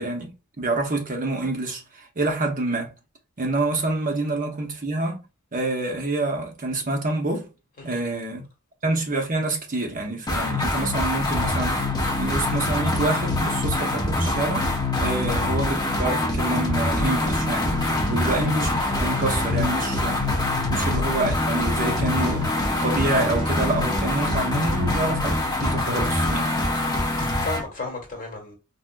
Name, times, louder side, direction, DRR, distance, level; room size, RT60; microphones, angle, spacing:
voice 1, 0.0-2.9 3.4-5.2 5.5-7.5 7.8-8.5 8.8-14.7 15.0-17.7 18.1-18.7 19.0-20.2 20.7-22.5 22.8-25.3 25.6-26.5, right 2 dB, 40° right, 0.8 m, -27 dB
sound 1, 10.3-27.7, left 2 dB, 20° left, 0.7 m, -24 dB
sound 2, 16.9-24.9, right 1 dB, 20° right, 1.1 m, -37 dB
voice 2, 26.8-28.5, left 3 dB, 40° left, 1.4 m, -35 dB
4.2 x 2.5 x 2.2 m
head